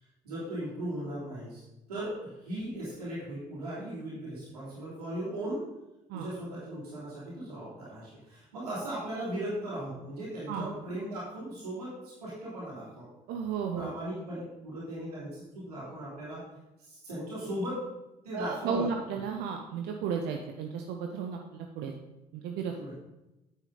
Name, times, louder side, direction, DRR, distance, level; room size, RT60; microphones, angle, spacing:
voice 1, 0.2-1.6 1.9-5.7 6.1-13.1 13.7-16.4 16.8-17.9 18.2-18.9 22.8-22.9, right 1 dB, 75° right, -8 dB, 3.1 m, -37 dB
voice 2, 13.3-13.9 18.3-21.9 22.4-22.9, right 6 dB, 60° right, 3 dB, 0.8 m, -34 dB
9.0 x 7.3 x 3.9 m, 0.96 s
figure-of-eight pair, 50°, 20 cm